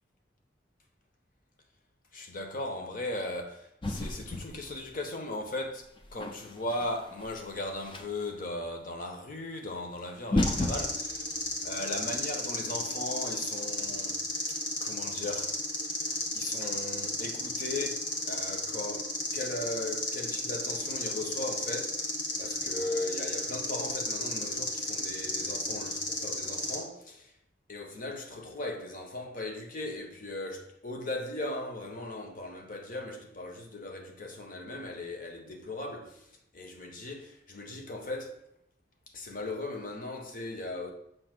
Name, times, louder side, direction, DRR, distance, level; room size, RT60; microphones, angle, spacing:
voice 1, 2.1-5.8 6.1-11.3 11.6-14.2 14.8-15.6 16.1-22.0 22.4-27.3 27.7-36.3 36.5-38.4 39.1-40.9, left 2 dB, 50° left, 1.0 m, -38 dB
sound 1, 3.8-5.0 5.8-8.3 9.7-9.8 10.2-12.4, left 1 dB, 30° left, 0.6 m, -34 dB
sound 2, 10.4-26.8, left 2 dB, 90° left, 1.6 m, -34 dB
7.7 x 2.9 x 6.0 m
head